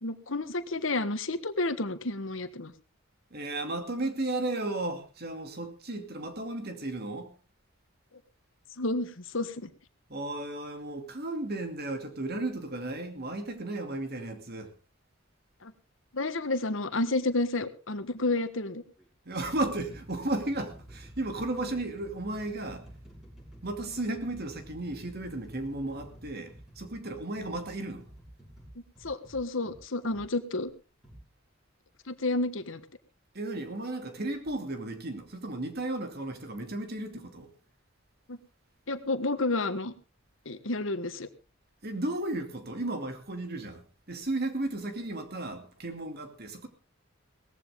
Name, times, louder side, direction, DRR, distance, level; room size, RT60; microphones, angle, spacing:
voice 1, 0.0-2.7 8.8-9.7 15.6-15.7 16.1-18.8 29.0-30.7 32.1-32.8 38.3-38.4 38.9-39.9 40.4-41.3, left 2 dB, 70° left, 1.4 m, -30 dB
voice 2, 3.3-7.3 10.1-14.7 19.3-22.9 23.6-28.1 33.3-37.5 41.8-43.8 44.1-46.7, right 2 dB, 50° right, 2.6 m, -34 dB
sound 1, 17.0-17.3 18.2-18.3 19.0-30.3 31.0-31.2, right 1 dB, ahead, 6.3 m, -51 dB
18.0 x 15.0 x 3.7 m
head